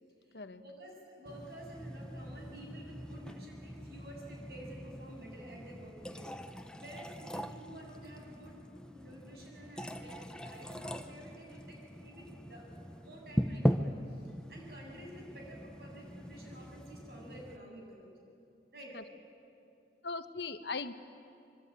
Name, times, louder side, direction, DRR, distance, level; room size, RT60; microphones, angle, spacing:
voice 1, 0.0-8.6 8.9-18.1 18.7-19.0, right 1 dB, 60° right, 0 dB, 7.7 m, -51 dB
sound 1, 1.3-17.6, equal, 5° left, 0.9 m, -40 dB
voice 2, 20.0-20.9, left 4 dB, 70° left, 10 dB, 1.1 m, -39 dB
26.0 x 23.5 x 9.5 m, 2.5 s
head